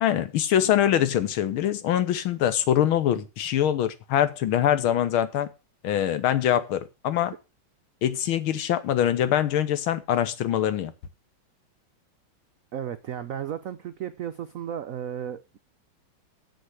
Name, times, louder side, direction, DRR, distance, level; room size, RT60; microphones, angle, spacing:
voice 1, 0.0-5.5 5.8-7.3 8.0-10.9, left 10 dB, 85° left, 1.8 m, -24 dB
voice 2, 12.7-15.6, right 9 dB, 85° right, 0.7 m, -34 dB
7.5 x 6.7 x 7.6 m
omnidirectional pair, 2.2 m